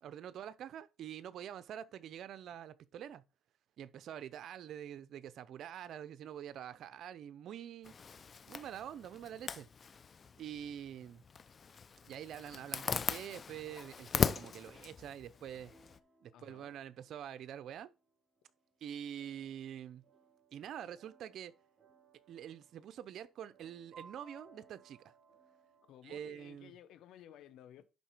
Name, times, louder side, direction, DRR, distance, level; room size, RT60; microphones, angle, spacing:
voice 1, 0.0-3.2 3.8-7.9 8.5-9.7 10.4-11.2 12.0-15.7 16.2-17.9 18.8-20.0 20.5-21.5 22.3-25.1 26.0-26.7, right 10 dB, 75° right, 0.7 m, -46 dB
Zipper (clothing), 7.8-16.0, left 6 dB, 45° left, 0.6 m, -39 dB
sound 1, 15.6-26.0, right 4 dB, 50° right, 3.7 m, -64 dB
voice 2, 16.3-16.8 25.9-27.8, left 11 dB, 85° left, 0.8 m, -56 dB
11.0 x 4.1 x 4.6 m
cardioid pair, 90°, 0 cm